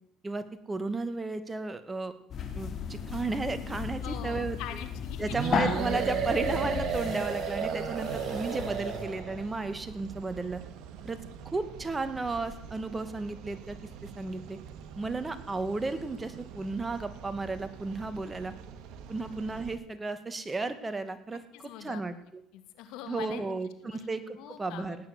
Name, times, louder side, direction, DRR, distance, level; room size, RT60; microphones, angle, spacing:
voice 1, 0.2-2.1 2.5-4.6 5.2-10.6 11.0-11.2 11.5-14.6 15.0-18.5 19.1-22.1 23.1-25.0, right 3 dB, 20° right, 11 dB, 2.0 m, -34 dB
sound 1, 2.3-9.0, left 6 dB, 50° left, 3.4 m, -35 dB
voice 2, 4.0-5.4 21.5-22.0 22.5-23.4 23.8-24.1 24.4-25.0, left 11 dB, 75° left, 9 dB, 2.3 m, -43 dB
sound 2, 5.3-9.5, right 6 dB, 55° right, 2.4 m, -32 dB
sound 3, 7.9-19.7, right 7 dB, 70° right, 1.8 m, -46 dB
18.5 x 9.1 x 8.3 m, 0.77 s
supercardioid pair, 85°, 0 cm